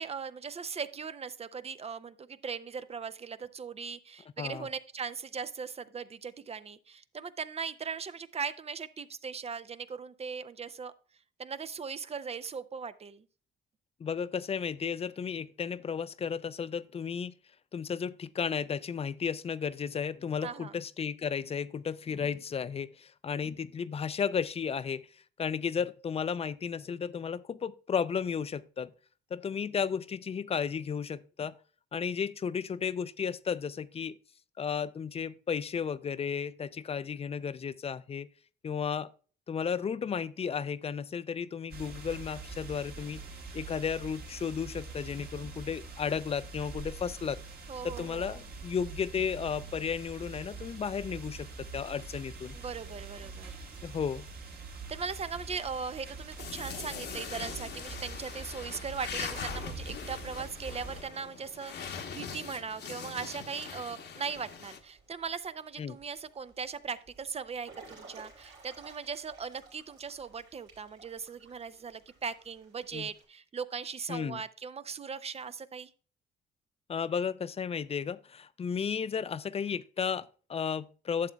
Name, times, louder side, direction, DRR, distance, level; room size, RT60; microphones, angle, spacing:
voice 1, 0.0-10.9 11.4-13.2 20.4-20.7 47.7-48.4 52.5-53.6 54.9-75.9, right 6 dB, 30° right, 0.5 m, -39 dB
voice 2, 4.4-4.7 14.0-17.3 17.7-25.1 25.4-28.9 29.3-31.6 31.9-34.2 34.6-38.3 38.6-39.1 39.5-43.2 43.5-47.4 47.8-52.6 53.8-54.2 65.8-66.0 72.9-73.1 74.1-74.4 76.9-81.3, left 7 dB, 30° left, 0.4 m, -34 dB
sound 1, 41.7-61.0, right 3 dB, 50° right, 1.5 m, -44 dB
sound 2, 56.4-64.8, left 6 dB, 60° left, 1.0 m, -42 dB
Water / Splash splatter / Drip, 58.0-73.2, right 4 dB, 70° right, 3.1 m, -58 dB
11.5 x 7.2 x 2.3 m
cardioid pair, 90°, 20 cm